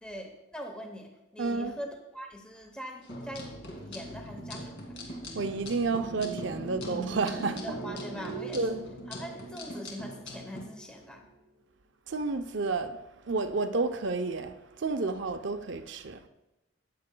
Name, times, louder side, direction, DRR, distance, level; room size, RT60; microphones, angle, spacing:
voice 1, 0.0-3.5 3.8-5.0 7.5-8.6 9.1-11.2, equal, 5° left, 0.8 m, -42 dB
voice 2, 1.4-1.7 5.3-7.6 8.5-8.8 12.1-13.0 13.3-16.2, right 3 dB, 60° right, 0.6 m, -30 dB
sound 1, 3.0-10.6, equal, 60° left, 2.3 m, -42 dB
sound 2, 3.2-11.5, right 3 dB, 80° left, 2.0 m, -43 dB
14.0 x 9.3 x 2.2 m
head